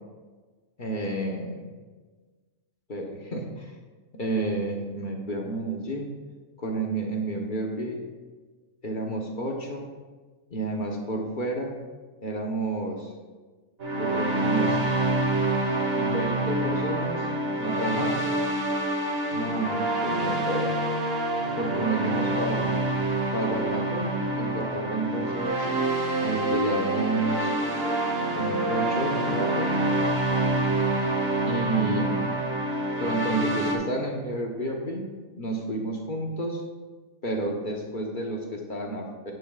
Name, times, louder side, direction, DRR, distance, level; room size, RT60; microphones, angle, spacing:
voice 1, 0.8-1.7 2.9-3.8 4.1-6.1 6.6-8.0 8.8-9.9 10.5-11.8 12.2-13.1 14.0-15.1 16.0-17.3 17.6-18.3 19.3-20.8 21.5-22.7 23.3-25.7 26.2-27.5 28.3-29.7 31.4-32.4 33.0-35.0 35.4-36.6 37.2-39.3, right 2 dB, 45° left, 1 dB, 1.1 m, -30 dB
sound 1, 13.8-33.7, right 2 dB, 55° right, 1.5 m, -27 dB
10.0 x 10.0 x 2.4 m, 1.3 s
omnidirectional pair, 1.2 m